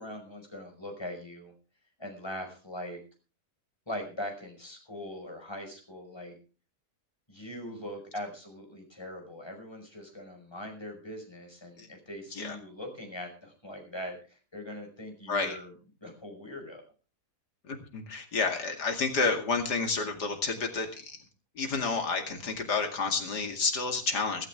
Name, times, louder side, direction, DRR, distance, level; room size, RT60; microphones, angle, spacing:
voice 1, 0.0-1.5 2.0-3.0 3.9-6.4 7.3-15.7 16.0-16.8, left 1 dB, 15° left, 3 dB, 5.5 m, -41 dB
voice 2, 17.7-21.2 21.6-24.5, left 4 dB, 85° left, 4 dB, 2.9 m, -30 dB
17.0 x 16.0 x 3.6 m, 0.35 s
omnidirectional pair, 1.7 m